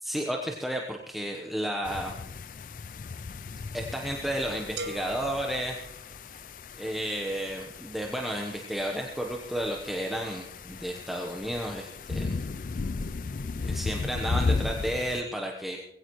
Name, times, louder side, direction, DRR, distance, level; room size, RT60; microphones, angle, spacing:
voice 1, 0.0-2.1 3.7-5.9 6.8-12.4 13.6-15.8, equal, ahead, 0 dB, 1.0 m, -32 dB
sound 1, 1.8-15.2, left 4 dB, 50° left, 0.4 m, -35 dB
sound 2, 4.8-6.6, right 2 dB, 75° right, 1.4 m, -41 dB
20.5 x 16.5 x 3.1 m, 0.81 s
head